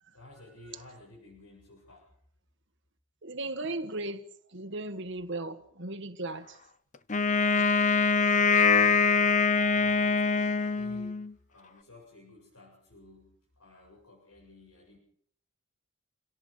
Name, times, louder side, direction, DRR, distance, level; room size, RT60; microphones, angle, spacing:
voice 1, 0.1-2.1 8.0-15.0, left 2 dB, 80° left, 7.6 m, -54 dB
voice 2, 3.2-4.2 4.5-6.5, right 2 dB, 55° right, 1.7 m, -36 dB
Wind instrument woodwind instrument, 7.1-11.3, left 4 dB, 35° left, 0.9 m, -24 dB
29.5 x 18.0 x 5.6 m
head